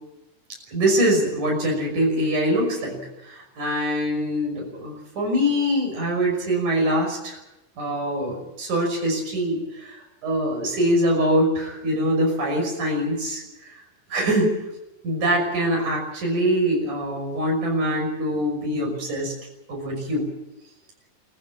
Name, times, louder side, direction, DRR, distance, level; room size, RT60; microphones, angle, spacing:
voice 1, 0.7-7.4 7.8-13.8 14.1-14.6 15.0-19.3 19.7-20.3, equal, 75° right, 0 dB, 7.3 m, -24 dB
25.5 x 15.0 x 8.9 m, 0.96 s
omnidirectional pair, 3.5 m